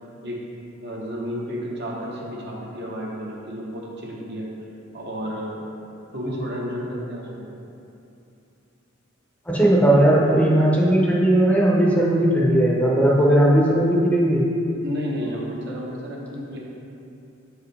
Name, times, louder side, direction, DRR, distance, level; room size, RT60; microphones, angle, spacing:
voice 1, 0.8-4.5 4.9-5.7 6.1-7.5 14.7-16.6, equal, 55° right, -3 dB, 1.0 m, -31 dB
voice 2, 9.5-14.4, right 1 dB, 5° left, -4 dB, 0.7 m, -17 dB
7.5 x 4.8 x 3.3 m, 2.7 s
head